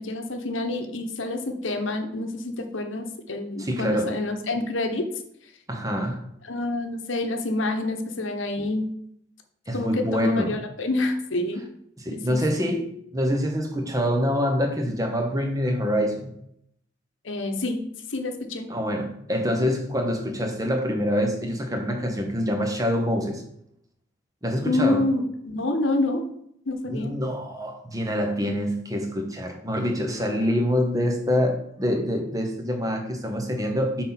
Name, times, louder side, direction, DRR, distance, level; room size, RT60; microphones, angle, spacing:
voice 1, 0.0-5.1 6.4-8.9 9.7-11.6 12.1-12.7 17.2-17.8 18.1-18.7 24.7-26.3 26.7-27.1 30.4-30.5, left 2 dB, 80° left, 5 dB, 1.0 m, -27 dB
voice 2, 3.6-4.1 5.7-6.2 8.6-8.7 9.7-10.6 12.0-12.9 13.1-16.3 18.7-23.4 24.4-25.0 26.9-34.0, equal, 20° right, 3 dB, 1.0 m, -25 dB
6.2 x 4.1 x 5.9 m, 0.72 s
head